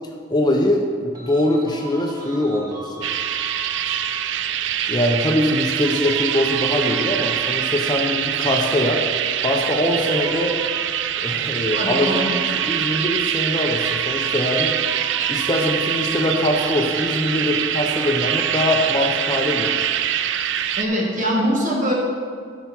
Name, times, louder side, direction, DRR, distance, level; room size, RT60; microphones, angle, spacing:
voice 1, 0.3-3.1 3.9-4.0 4.9-9.0 9.4-10.6 11.2-12.3 12.5-14.8 15.3-19.9, left 1 dB, 20° left, 1 dB, 0.7 m, -22 dB
sound 1, 1.1-4.5 5.3-9.1 9.6-13.5 13.8-20.1, right 2 dB, 20° right, 1.2 m, -39 dB
sound 2, 3.0-20.8, right 10 dB, 70° right, 0.4 m, -24 dB
voice 2, 11.7-12.4 20.8-21.9, equal, 40° right, -3 dB, 1.9 m, -22 dB
12.0 x 5.9 x 4.4 m, 2.1 s
head